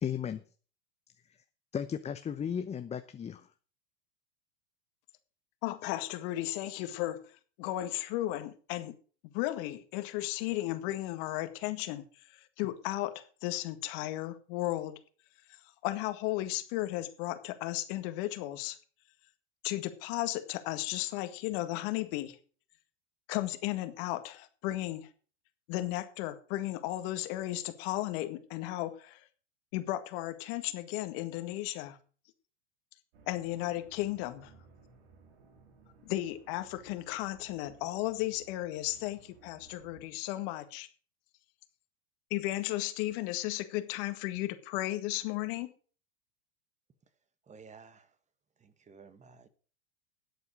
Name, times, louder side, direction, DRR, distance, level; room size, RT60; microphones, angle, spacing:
voice 1, 0.0-0.4 1.7-3.5, left 8 dB, 20° left, 0.7 m, -35 dB
voice 2, 5.6-9.0 9.2-15.0 15.8-18.8 19.6-22.4 23.3-25.1 25.7-29.2 29.7-32.0 33.3-34.5 36.0-40.9 42.3-45.7, left 16 dB, 55° left, 1.9 m, -35 dB
sound 1, 33.1-40.0, right 4 dB, 65° right, 3.5 m, -59 dB
voice 3, 47.5-48.1 48.6-49.5, right 5 dB, 20° right, 1.5 m, -54 dB
11.5 x 8.1 x 6.4 m
hypercardioid pair, 95°, 33 cm